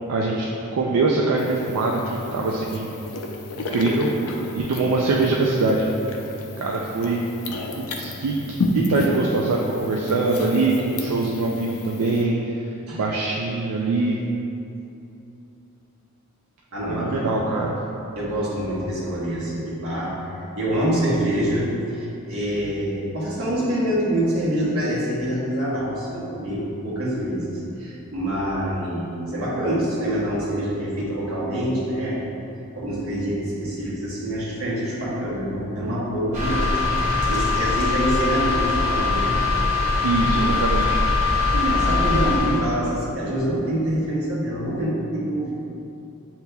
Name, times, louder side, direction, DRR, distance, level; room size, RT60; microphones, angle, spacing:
voice 1, 0.1-0.5 0.7-2.9 3.6-4.1 4.5-5.9 6.6-7.2 7.8-12.6 12.9-14.2 16.9-17.8 40.0-41.0, right 3 dB, 90° right, -2 dB, 0.4 m, -23 dB
sound 1, 1.4-12.2, left 2 dB, 80° left, 0.5 m, -32 dB
voice 2, 16.7-17.3 18.1-32.3 32.7-36.7 37.3-39.4 41.5-45.5, right 1 dB, 70° right, -7 dB, 1.2 m, -25 dB
sound 2, 36.3-42.7, left 3 dB, 30° right, 0.9 m, -22 dB
7.9 x 2.9 x 2.2 m, 2.8 s
head